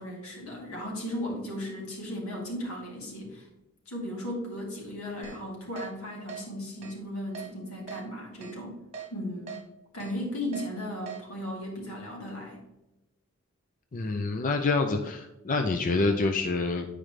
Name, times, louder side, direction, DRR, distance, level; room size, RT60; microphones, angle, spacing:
voice 1, 0.0-3.5 3.9-8.8 9.1-9.6 9.9-12.6, left 1 dB, 85° left, -2 dB, 2.5 m, -36 dB
Keyboard (musical), 5.2-5.4 5.8-5.9 6.3-6.4 6.8-6.9 7.3-7.5 7.9-8.0 8.4-8.5 8.9-9.1 9.5-9.6 10.0-10.1 10.5-10.7 11.1-11.2, right 6 dB, 30° right, 1.3 m, -40 dB
voice 2, 13.9-16.9, left 3 dB, 40° left, 5 dB, 0.5 m, -27 dB
8.9 x 5.0 x 3.2 m, 0.99 s
head